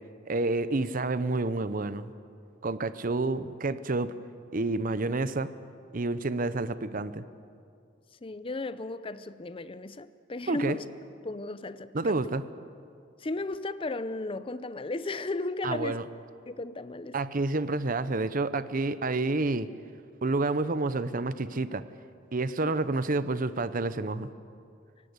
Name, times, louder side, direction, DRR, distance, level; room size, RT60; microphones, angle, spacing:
voice 1, 0.3-2.1 2.6-4.1 4.5-5.5 5.9-7.2 10.5-10.8 11.9-12.4 15.6-16.0 17.1-19.7 20.2-21.8 22.3-24.3, right 2 dB, 45° right, 0.7 m, -29 dB
voice 2, 8.2-10.8 11.2-12.2 13.2-16.0 16.5-17.2 22.6-22.7, left 2 dB, 25° left, 0.6 m, -35 dB
23.5 x 18.0 x 8.1 m
head